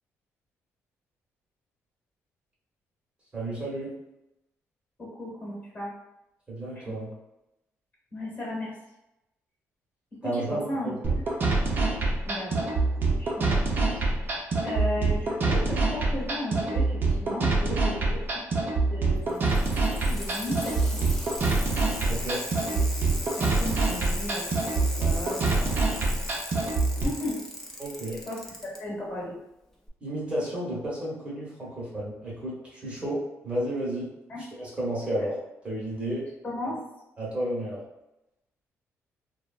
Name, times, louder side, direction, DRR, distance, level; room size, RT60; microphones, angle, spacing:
voice 1, 3.3-3.9 6.5-7.1 10.2-11.0 22.1-22.4 27.8-28.2 30.0-33.2 33.4-34.1 34.6-35.4 35.6-36.2 37.2-37.8, right 1 dB, 25° right, -6 dB, 1.0 m, -32 dB
voice 2, 5.0-5.9 6.7-7.0 8.1-8.7 10.2-10.9 12.2-12.8 13.2-19.8 20.1-21.0 22.7-22.8 23.2-25.8 27.0-27.4 28.3-29.4 34.3-34.4 35.2-35.3 36.4-36.8, left 1 dB, 35° left, -5 dB, 1.2 m, -36 dB
sound 1, 11.0-27.0, right 3 dB, 40° right, 0.6 m, -25 dB
Bicycle, 19.2-28.8 29.9-30.0, left 1 dB, 10° left, 0.5 m, -38 dB
3.0 x 2.1 x 2.4 m, 0.90 s
cardioid pair, 120°, 5 cm